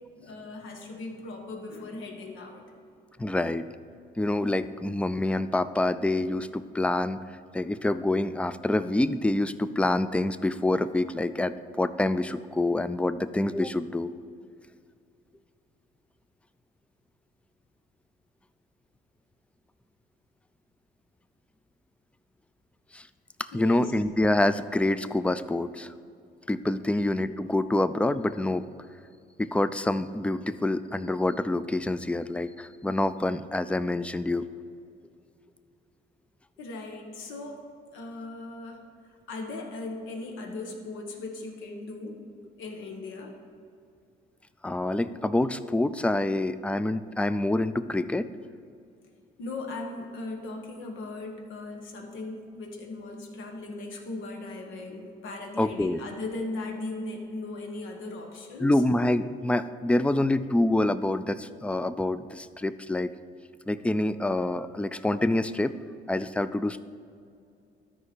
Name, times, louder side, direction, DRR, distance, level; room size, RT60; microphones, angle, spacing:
voice 1, 0.2-2.9 23.5-23.8 26.9-27.1 36.6-37.6 37.9-38.8 39.3-42.2 42.6-43.3 49.4-58.8, left 2 dB, 80° left, 2 dB, 1.3 m, -38 dB
voice 2, 3.2-3.7 4.2-7.2 7.5-14.1 22.9-23.1 23.5-25.9 26.5-28.6 29.4-34.4 44.6-48.3 55.6-56.0 58.6-63.1 63.7-65.7 66.1-66.8, left 1 dB, 5° left, 13 dB, 0.3 m, -26 dB
12.5 x 4.9 x 4.4 m, 2.4 s
cardioid pair, 80°, 20 cm